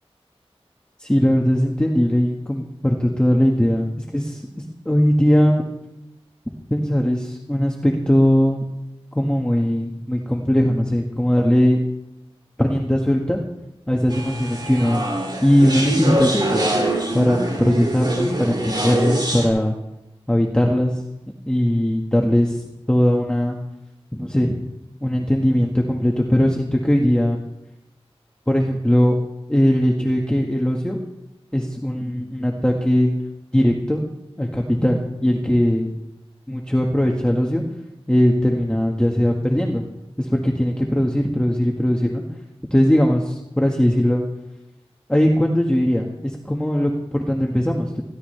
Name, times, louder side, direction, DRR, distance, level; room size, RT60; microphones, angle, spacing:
voice 1, 1.0-4.4 4.8-5.6 6.7-8.7 9.1-11.8 12.6-13.4 13.9-15.0 15.4-16.7 17.1-19.7 20.3-21.0 21.4-23.6 24.1-24.6 25.0-27.4 28.5-29.1 29.5-31.0 31.5-33.1 33.5-34.1 34.4-35.9 36.5-37.6 38.1-39.8 40.2-42.2 42.7-44.2 45.1-48.0, equal, 10° left, 0 dB, 1.6 m, -19 dB
sound 1, 14.1-19.5, right 1 dB, 45° right, 5.7 m, -24 dB
20.5 x 15.5 x 3.3 m, 0.89 s
wide cardioid pair, 55°, 11 cm